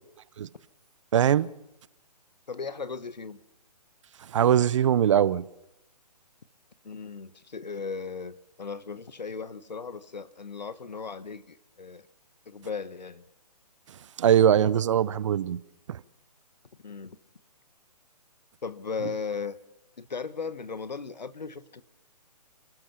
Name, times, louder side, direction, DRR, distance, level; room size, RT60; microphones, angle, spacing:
voice 1, 1.1-1.5 4.3-5.4 14.2-15.6 15.9-16.0, right 9 dB, 45° right, 0.7 m, -21 dB
voice 2, 2.5-3.4 6.8-12.1 12.5-13.2 16.8-17.2 18.6-19.6 20.0-21.8, left 5 dB, 85° left, 1.3 m, -37 dB
28.5 x 14.0 x 7.3 m
hypercardioid pair, 145°, 21 cm